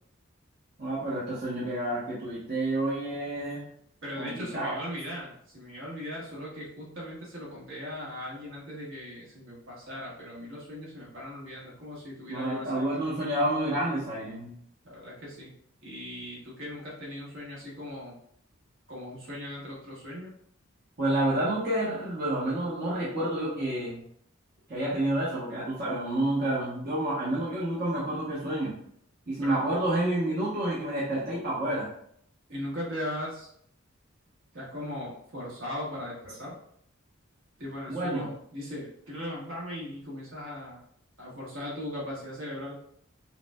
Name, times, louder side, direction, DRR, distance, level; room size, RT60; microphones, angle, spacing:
voice 1, 0.8-3.7 4.2-4.8 12.3-14.5 21.0-24.0 24.7-28.7 29.3-31.9 37.9-38.3, right 1 dB, 45° right, -9 dB, 1.0 m, -29 dB
voice 2, 4.0-13.0 14.8-15.5 15.8-18.2 18.9-20.3 29.4-29.6 32.5-33.5 34.5-36.5 37.6-40.8 41.2-42.8, left 1 dB, 65° right, -5 dB, 1.4 m, -38 dB
5.5 x 2.2 x 2.3 m, 0.66 s
head